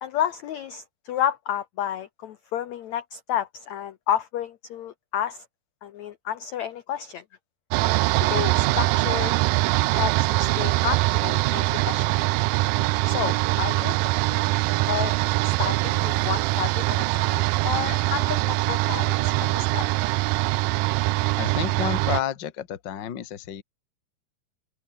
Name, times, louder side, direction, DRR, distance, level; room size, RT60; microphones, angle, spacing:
voice 1, 0.0-5.4 5.8-7.2 8.2-9.3 9.9-12.2 13.0-14.6 14.9-15.1 15.4-19.9, left 10 dB, 70° left, 1.8 m, -31 dB
sound 1, 7.7-22.2, right 20 dB, 85° right, 1.9 m, -23 dB
voice 2, 21.4-23.6, left 10 dB, 45° left, 1.5 m, -30 dB
open air
omnidirectional pair, 4.5 m